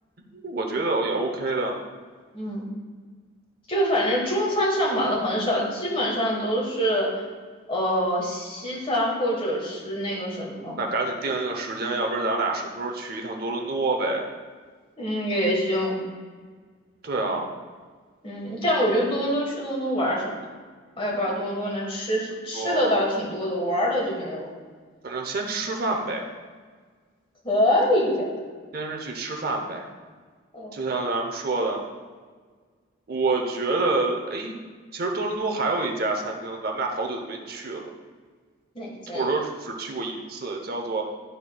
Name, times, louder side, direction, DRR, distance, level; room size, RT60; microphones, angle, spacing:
voice 1, 0.3-1.8 10.8-14.3 17.0-17.5 22.5-23.0 25.0-26.3 28.7-29.9 30.7-31.8 33.1-34.6 34.9-37.9 39.1-41.0, right 3 dB, 50° right, 2 dB, 0.7 m, -27 dB
voice 2, 3.7-7.2 7.7-10.8 15.0-16.0 18.2-20.4 21.0-24.5 27.4-28.3 30.5-30.7 38.7-39.3, equal, 25° left, -3 dB, 1.3 m, -25 dB
11.5 x 4.5 x 2.2 m, 1.5 s
head